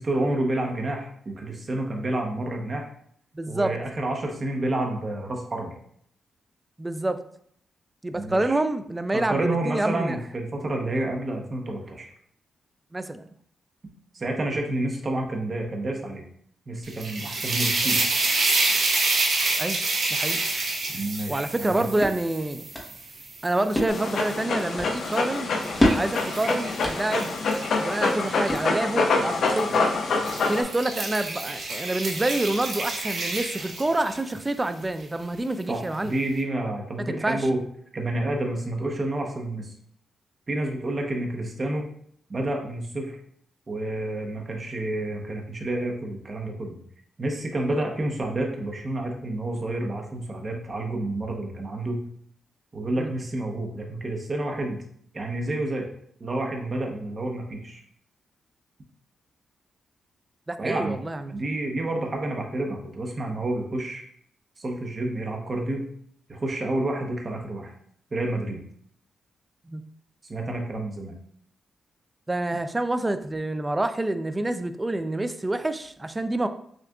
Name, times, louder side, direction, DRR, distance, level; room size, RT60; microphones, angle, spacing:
voice 1, 0.0-2.9 3.5-5.8 8.1-8.6 9.1-12.1 14.1-16.3 16.7-18.1 20.9-22.1 35.7-37.6 37.9-39.7 40.5-41.9 42.3-43.2 43.7-46.8 47.2-52.0 52.7-54.8 55.1-55.9 56.2-57.8 60.6-61.0 61.3-64.0 64.6-65.9 66.3-67.7 68.1-68.6 70.3-71.1, right 1 dB, 35° right, 1 dB, 0.8 m, -29 dB
voice 2, 3.3-3.7 6.8-7.2 8.0-10.2 12.9-13.2 19.6-19.8 20.1-20.4 21.3-22.7 23.4-25.5 25.9-27.4 27.8-29.8 30.5-36.2 37.1-37.5 47.7-47.8 53.0-53.1 60.5-61.3 69.7-69.8 72.3-76.5, right 2 dB, 20° right, 10 dB, 0.3 m, -27 dB
sound 1, 16.8-24.1 24.6-28.6 29.5-29.7 30.1-34.3, right 3 dB, 65° right, 0.9 m, -28 dB
sound 2, 21.6-29.1, equal, 15° left, 0.9 m, -31 dB
Dog, 23.9-30.6, left 3 dB, 70° left, 0.5 m, -26 dB
6.3 x 2.4 x 2.3 m, 0.65 s
cardioid pair, 95°, 0 cm